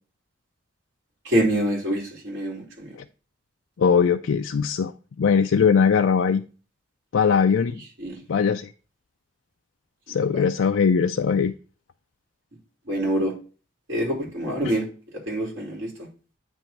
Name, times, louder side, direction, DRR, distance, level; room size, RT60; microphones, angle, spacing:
voice 1, 1.3-2.6 8.0-8.1 12.9-13.3 13.9-14.8 15.3-15.9, right 1 dB, 75° right, -3 dB, 3.6 m, -25 dB
voice 2, 3.8-4.9 5.2-6.4 7.1-7.8 8.3-8.7 10.1-11.5 14.6-14.7, left 6 dB, 85° left, 6 dB, 0.4 m, -20 dB
9.0 x 3.0 x 5.8 m, 0.37 s
head